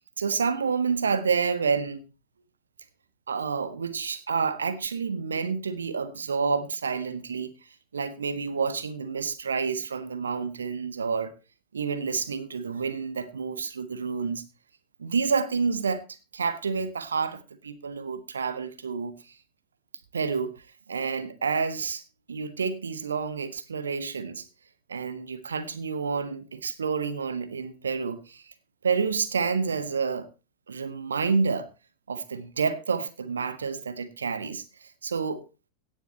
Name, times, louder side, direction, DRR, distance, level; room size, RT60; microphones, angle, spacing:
voice 1, 0.2-2.0 3.3-7.5 7.9-11.3 11.7-14.4 15.0-16.0 16.3-19.3 20.1-20.5 20.9-22.0 22.3-24.5 24.9-28.5 28.8-30.3 30.7-31.7 32.1-35.4, right 5 dB, 70° right, 1.5 m, -29 dB
17.0 x 7.2 x 4.4 m
figure-of-eight pair, 90°, 0 cm